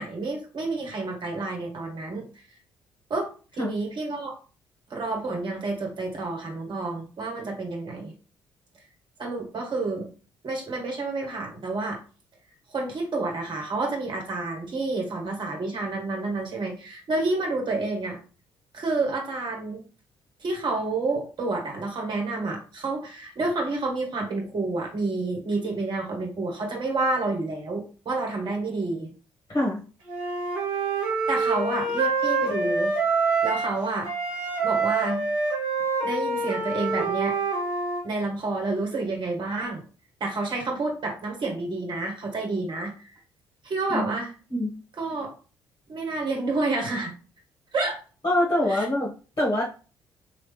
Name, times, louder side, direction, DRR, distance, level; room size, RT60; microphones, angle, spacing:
voice 1, 0.0-2.2 3.1-4.3 4.9-8.1 9.2-10.1 10.4-12.0 12.7-18.2 18.7-19.8 20.4-29.1 31.3-32.9 33.4-34.1 34.6-35.3 36.0-37.3 38.0-39.8 40.2-43.2 43.6-44.3 45.0-45.3 45.9-47.1 47.7-48.0 48.7-48.9, right 3 dB, 45° right, 1 dB, 1.3 m, -29 dB
voice 2, 29.5-29.8 43.9-44.0 44.5-44.7 48.2-49.1 49.4-49.6, left 1 dB, 30° left, -4 dB, 1.3 m, -24 dB
Wind instrument woodwind instrument, 30.1-33.8 34.0-38.0, right 4 dB, 70° right, 1.1 m, -26 dB
3.1 x 2.4 x 3.2 m, 0.36 s
figure-of-eight pair, 45°, 11 cm